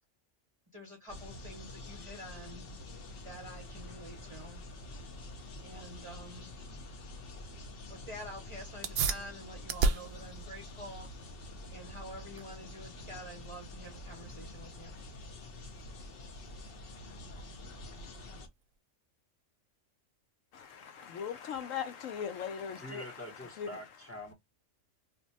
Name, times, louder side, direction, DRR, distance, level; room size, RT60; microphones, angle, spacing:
voice 1, 0.7-4.6 5.2-5.4 5.6-6.5 7.9-11.1 11.7-15.0, equal, 30° right, 0.7 m, -48 dB
sound 1, 1.1-18.5, left 2 dB, 55° left, 0.8 m, -47 dB
sound 2, 8.7-18.8, right 4 dB, 60° right, 0.6 m, -38 dB
voice 2, 20.5-23.8, left 7 dB, 80° left, 1.0 m, -40 dB
voice 3, 22.8-24.3, left 1 dB, 15° left, 0.7 m, -45 dB
2.6 x 2.2 x 4.0 m
omnidirectional pair, 1.3 m